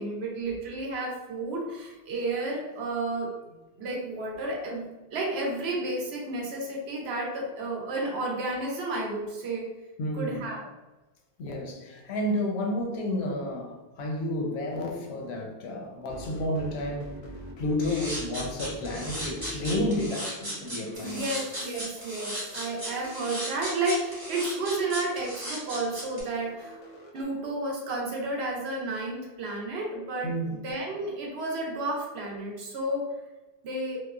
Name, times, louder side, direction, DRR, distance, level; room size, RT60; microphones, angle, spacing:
voice 1, 0.0-3.3 3.8-9.7 10.1-10.6 21.0-26.8 27.1-33.0 33.6-34.0, right 2 dB, 80° right, 0.9 m, -32 dB
voice 2, 10.0-10.4 11.4-17.1 17.6-21.2 30.2-30.5, left 1 dB, 85° left, 0.8 m, -31 dB
sound 1, 16.1-27.2, equal, 55° left, 0.6 m, -45 dB
sound 2, 17.8-26.2, equal, 25° right, 0.9 m, -36 dB
sound 3, 20.9-24.0, right 3 dB, 55° right, 0.6 m, -52 dB
2.9 x 2.0 x 2.3 m
omnidirectional pair, 1.1 m